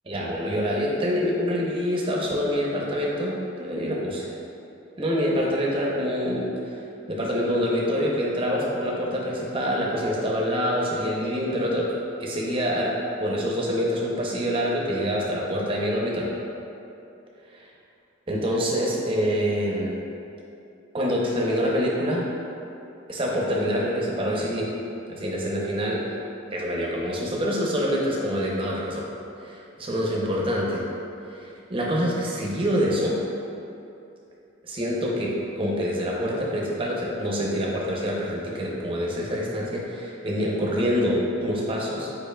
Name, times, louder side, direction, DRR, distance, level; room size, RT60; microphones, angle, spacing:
voice 1, 0.1-4.3 5.0-6.8 7.1-11.8 12.2-12.9 13.2-16.3 18.3-19.9 20.9-22.2 23.1-24.7 25.1-26.2 26.5-29.0 29.4-30.8 31.3-33.1 34.6-42.1, equal, 25° right, -3 dB, 0.6 m, -26 dB
5.4 x 4.4 x 2.2 m, 2.7 s
head